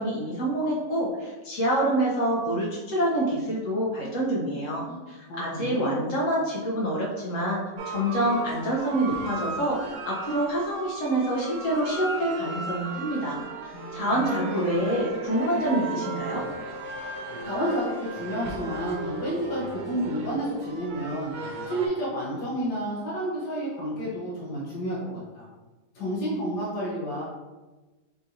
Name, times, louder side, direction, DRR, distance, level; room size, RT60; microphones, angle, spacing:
voice 1, 0.0-13.4 13.9-16.4, right 1 dB, 60° left, -3 dB, 1.0 m, -27 dB
voice 2, 4.8-6.0 13.7-14.5 17.4-25.5 25.9-27.2, right 1 dB, 80° left, -7 dB, 1.5 m, -31 dB
sound 1, 7.8-21.9, right 3 dB, 80° right, 1.2 m, -36 dB
4.7 x 3.0 x 2.6 m, 1.2 s
omnidirectional pair, 1.8 m